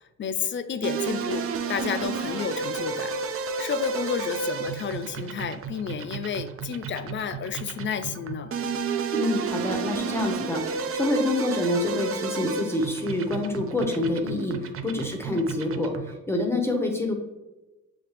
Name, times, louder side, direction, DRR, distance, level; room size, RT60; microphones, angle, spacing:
voice 1, 0.2-3.1 3.6-8.5, left 7 dB, 40° left, 11 dB, 0.4 m, -31 dB
sound 1, 0.8-16.2, right 5 dB, 50° right, 0.5 m, -32 dB
voice 2, 9.1-17.1, left 1 dB, 10° left, 1 dB, 0.7 m, -27 dB
5.9 x 2.8 x 3.2 m, 1.1 s
cardioid pair, 90°, 30 cm